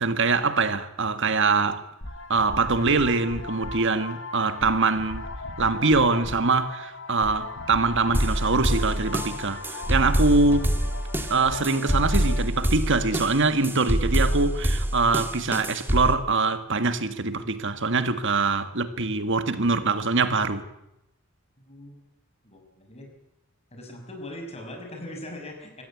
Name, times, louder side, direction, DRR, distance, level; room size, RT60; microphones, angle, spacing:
voice 1, 0.0-1.8 2.3-5.3 5.6-10.7 11.3-20.6, right 3 dB, 60° right, 1.7 m, -23 dB
sound 1, 2.0-12.4, left 2 dB, 65° left, 2.1 m, -37 dB
sound 2, 8.1-16.2, equal, 10° right, 1.5 m, -26 dB
voice 2, 21.6-22.0 22.4-23.1 23.7-25.8, left 1 dB, 30° left, 5.6 m, -40 dB
23.5 x 16.5 x 8.6 m
head